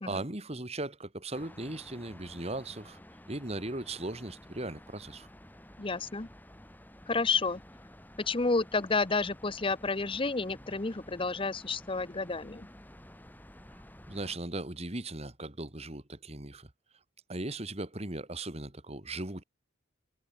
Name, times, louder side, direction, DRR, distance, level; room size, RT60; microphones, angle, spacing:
voice 1, 0.1-3.0 3.3-5.3 14.1-16.7 17.3-19.4, right 2 dB, 30° right, 2.5 m, -38 dB
sound 1, 1.3-14.4, left 1 dB, 10° left, 3.8 m, -52 dB
voice 2, 5.8-6.3 7.1-7.6 8.2-12.7, left 4 dB, 25° left, 0.8 m, -30 dB
head